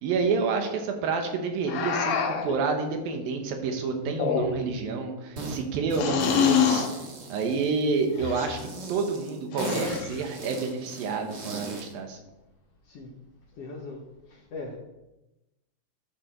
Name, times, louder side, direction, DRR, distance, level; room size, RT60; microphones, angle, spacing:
voice 1, 0.0-6.9 7.3-12.2, right 4 dB, 85° right, 4 dB, 3.1 m, -29 dB
sound 1, 1.7-2.6 4.1-4.8 5.9-6.9 8.2-8.6 9.5-10.2, left 7 dB, 80° left, 2.7 m, -26 dB
sound 2, 5.4-5.6 5.9-8.0 8.5-11.9, right 3 dB, 50° right, 1.3 m, -37 dB
voice 2, 13.6-14.0 14.3-14.8, left 3 dB, 60° left, -1 dB, 1.8 m, -39 dB
12.5 x 6.6 x 4.6 m, 0.97 s
omnidirectional pair, 4.0 m